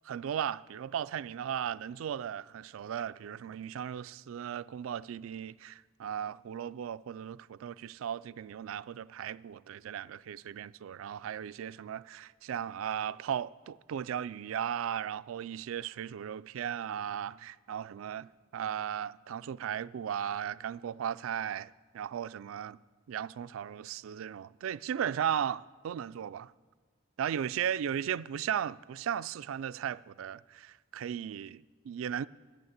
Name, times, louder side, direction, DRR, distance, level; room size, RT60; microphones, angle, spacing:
voice 1, 0.0-22.8 23.1-26.5 27.2-32.3, right 9 dB, 85° right, 0.3 m, -36 dB
11.5 x 9.3 x 8.0 m
head